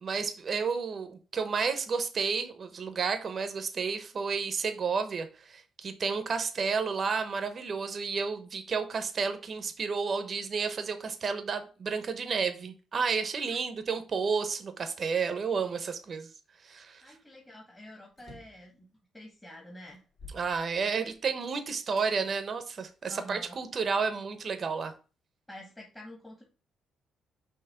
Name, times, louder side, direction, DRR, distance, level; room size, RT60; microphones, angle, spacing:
voice 1, 0.0-16.3 16.6-17.0 20.3-24.9, right 5 dB, 45° right, 0.9 m, -31 dB
voice 2, 17.0-18.9 19.1-20.0 20.8-21.1 23.1-23.6 25.5-26.4, equal, 10° left, 1.5 m, -48 dB
sound 1, 18.1-18.7 19.3-19.4 19.9-21.3 22.0-22.1 22.8-23.9, left 2 dB, 45° left, 2.6 m, -52 dB
5.9 x 2.9 x 5.6 m
cardioid pair, 90°, 0 cm